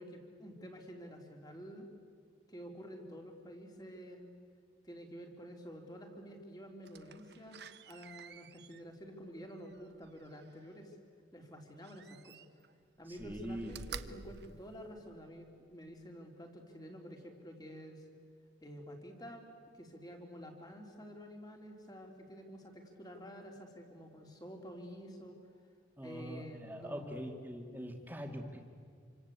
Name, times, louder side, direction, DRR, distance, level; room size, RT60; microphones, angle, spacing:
voice 1, 0.0-1.9 2.5-4.3 4.8-11.0 11.3-12.4 13.0-18.0 18.6-19.5 19.7-25.4 26.0-27.2, equal, 20° left, 2 dB, 3.4 m, -49 dB
Slam, 6.8-10.7 11.8-12.7 13.1-15.4 15.9-16.0, right 6 dB, 55° right, 0.9 m, -51 dB
voice 2, 13.1-13.7 14.0-14.2 26.0-28.6, equal, 10° right, 3 dB, 2.5 m, -43 dB
28.0 x 26.0 x 8.4 m, 2.2 s
head